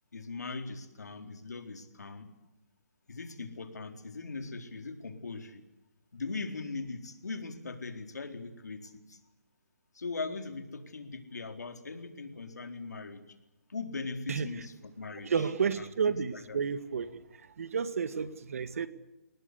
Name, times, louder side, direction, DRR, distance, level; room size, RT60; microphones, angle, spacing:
voice 1, 0.1-2.4 3.1-5.6 6.1-9.2 9.9-13.2 13.7-15.4 15.8-16.6, left 3 dB, 85° left, 7 dB, 4.1 m, -40 dB
voice 2, 15.2-17.2 17.6-18.9, right 6 dB, 60° right, 13 dB, 2.0 m, -31 dB
29.5 x 19.0 x 8.4 m, 0.97 s
hypercardioid pair, 165°, 9 cm